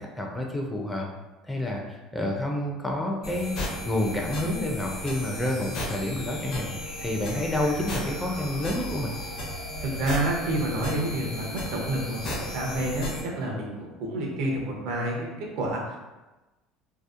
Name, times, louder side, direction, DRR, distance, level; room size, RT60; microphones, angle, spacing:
voice 1, 0.2-1.1 1.4-6.7 7.0-9.1, left 1 dB, 10° left, 0 dB, 0.4 m, -29 dB
sound 1, 3.2-13.2, left 1 dB, 60° left, 0.6 m, -35 dB
voice 2, 9.8-16.0, right 1 dB, 75° right, -1 dB, 0.6 m, -29 dB
2.7 x 2.0 x 2.4 m, 1.1 s
cardioid pair, 125°, 0 cm